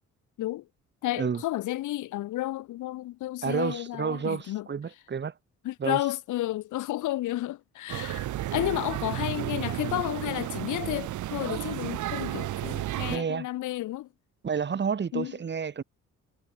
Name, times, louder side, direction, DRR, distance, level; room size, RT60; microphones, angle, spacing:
voice 1, 1.0-4.7 5.6-14.1 15.1-15.3, left 15 dB, 80° left, 1.2 m, -32 dB
voice 2, 3.4-5.3 5.8-6.0 13.1-13.5 14.4-15.8, right 6 dB, 35° right, 1.8 m, -30 dB
sound 1, 7.9-13.2, right 14 dB, 75° right, 1.6 m, -32 dB
cardioid pair, 90°, 30 cm